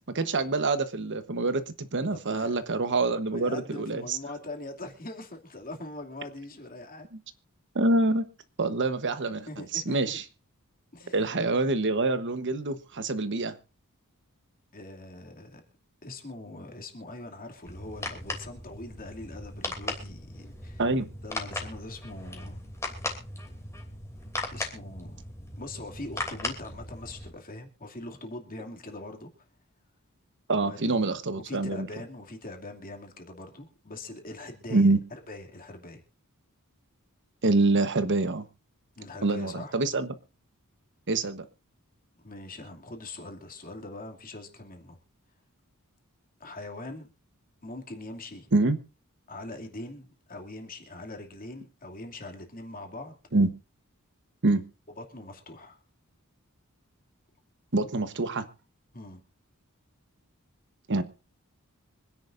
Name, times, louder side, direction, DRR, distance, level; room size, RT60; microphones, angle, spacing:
voice 1, 0.1-4.2 7.7-8.2 8.6-10.2 11.1-13.6 20.8-21.1 30.5-31.9 34.7-35.0 37.4-38.5 39.2-40.1 41.1-41.4 48.5-48.8 53.3-53.5 54.4-54.6 57.7-58.4 60.9-61.0, right 2 dB, 55° right, 11 dB, 1.1 m, -26 dB
voice 2, 2.1-2.6 3.3-7.1 9.5-10.2 10.9-11.2 14.7-15.6 16.0-20.8 21.2-22.6 24.5-25.2 25.6-29.3 30.6-30.9 31.5-36.0 39.0-39.8 42.2-45.0 46.4-47.1 47.6-48.5 49.3-53.2 55.0-55.8 58.9-59.2, left 2 dB, 40° left, 3 dB, 2.6 m, -42 dB
sound 1, 17.7-27.3, left 2 dB, 15° left, 2.9 m, -38 dB
25.5 x 10.5 x 2.6 m, 0.32 s
head